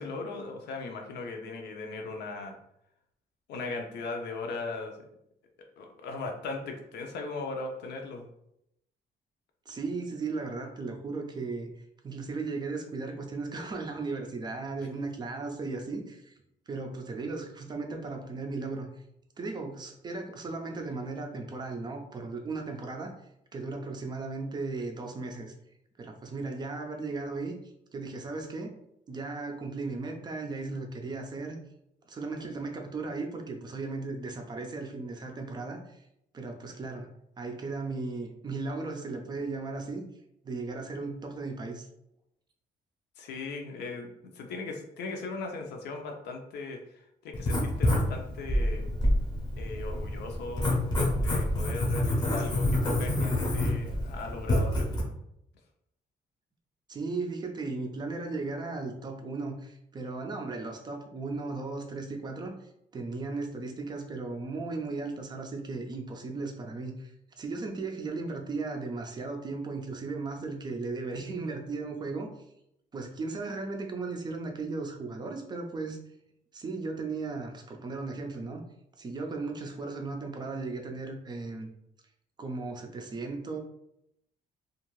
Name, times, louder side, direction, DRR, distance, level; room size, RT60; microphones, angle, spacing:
voice 1, 0.0-2.6 3.5-5.0 5.8-8.3 14.8-14.9 43.2-48.9 49.6-54.9, left 3 dB, 90° left, 3 dB, 0.6 m, -38 dB
voice 2, 9.7-11.7 12.0-16.3 16.7-18.9 19.4-23.1 23.5-25.5 26.0-27.5 27.9-28.7 29.1-31.6 32.1-36.0 36.3-37.1 37.4-40.0 40.4-41.9 56.9-72.3 72.9-76.0 76.5-78.6 79.0-81.7 82.4-83.6, right 3 dB, 25° right, 3 dB, 0.3 m, -36 dB
Writing, 47.3-55.0, left 1 dB, 25° left, 0.6 m, -28 dB
2.6 x 2.4 x 3.0 m, 0.79 s
cardioid pair, 165°, 17 cm